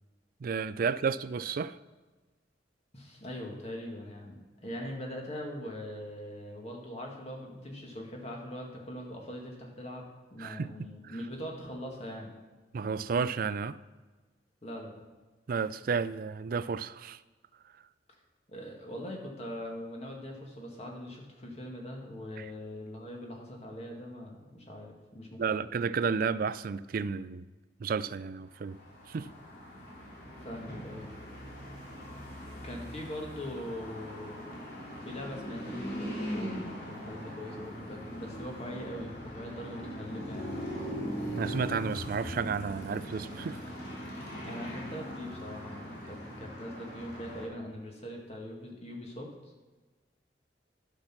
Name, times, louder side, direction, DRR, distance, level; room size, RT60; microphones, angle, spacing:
voice 1, 0.4-1.8 10.4-10.7 11.0-11.2 12.7-13.8 15.5-17.2 22.4-22.5 25.4-27.5 27.8-28.8 29.1-29.3 41.3-43.6, right 5 dB, 50° right, 0.4 m, -32 dB
voice 2, 2.9-12.3 14.6-15.0 18.5-25.6 30.4-31.1 32.6-34.4 35.0-40.6 44.5-49.3, equal, 35° left, 1.9 m, -42 dB
sound 1, 28.6-47.5, equal, 60° left, 3.0 m, -40 dB
11.5 x 6.1 x 6.0 m
head